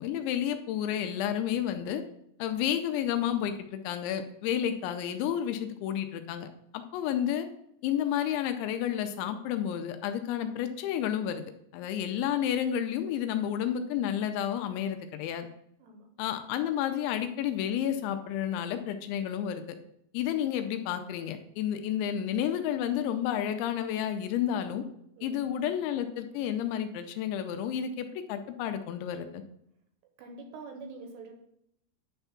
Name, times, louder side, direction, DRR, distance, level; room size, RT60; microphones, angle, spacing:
voice 1, 0.0-2.0 2.4-6.5 6.7-7.5 7.8-11.4 11.7-15.5 16.2-19.7 20.1-24.8 25.2-29.4, left 10 dB, 85° left, 7 dB, 2.9 m, -31 dB
voice 2, 15.8-16.1 25.2-25.6 30.2-31.4, right 3 dB, 75° right, 4 dB, 2.7 m, -45 dB
9.8 x 3.5 x 5.7 m, 0.74 s
omnidirectional pair, 5.3 m